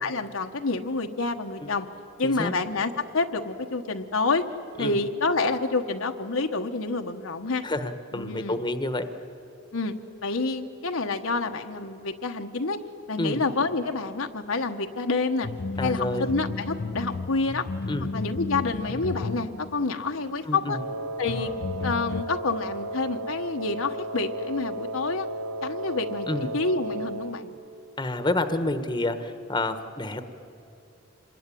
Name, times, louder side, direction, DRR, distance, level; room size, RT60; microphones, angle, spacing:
voice 1, 0.0-1.9 2.2-4.5 4.8-7.6 8.1-8.6 9.7-9.9 10.2-12.8 13.1-15.5 15.8-17.7 18.1-20.8 21.2-21.5 21.8-25.3 25.6-26.3 26.5-27.5, left 3 dB, 80° left, 5 dB, 1.2 m, -28 dB
voice 2, 7.6-9.0 13.2-13.4 15.8-16.3 17.9-18.1 20.5-20.8 26.3-26.5 28.0-30.3, left 2 dB, 20° left, 9 dB, 1.1 m, -29 dB
sound 1, 15.4-20.3 21.3-22.2, left 3 dB, 50° left, 0.6 m, -33 dB
Wind instrument woodwind instrument, 20.7-27.4, right 1 dB, 80° right, 1.2 m, -34 dB
26.5 x 21.0 x 10.0 m, 2.8 s
head